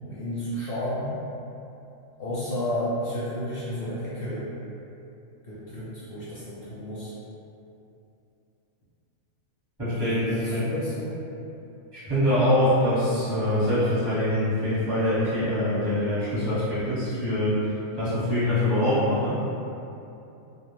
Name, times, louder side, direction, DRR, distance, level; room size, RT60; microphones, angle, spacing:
voice 1, 0.0-1.1 2.2-4.5 5.4-7.1 9.8-11.2, equal, 55° left, -9 dB, 0.6 m, -32 dB
voice 2, 9.8-10.7 11.9-17.6 18.0-19.4, left 1 dB, 20° right, -13 dB, 0.9 m, -24 dB
2.3 x 2.0 x 3.1 m, 2.8 s
omnidirectional pair, 1.4 m